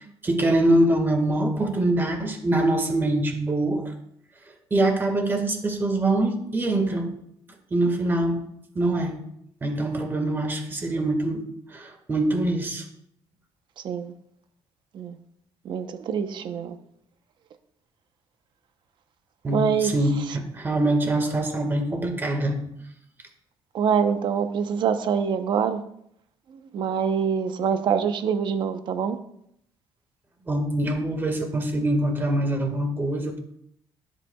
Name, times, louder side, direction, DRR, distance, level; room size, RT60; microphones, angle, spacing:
voice 1, 0.2-3.8 4.7-7.1 7.7-8.4 8.7-9.1 9.6-11.4 11.7-12.8 19.4-22.6 30.4-33.4, right 1 dB, 20° right, 5 dB, 1.8 m, -24 dB
voice 2, 15.6-16.7 19.5-20.2 23.7-25.8 26.7-29.2, right 7 dB, 50° right, 8 dB, 0.9 m, -25 dB
21.5 x 8.2 x 2.4 m, 0.72 s
cardioid pair, 145°, 10 cm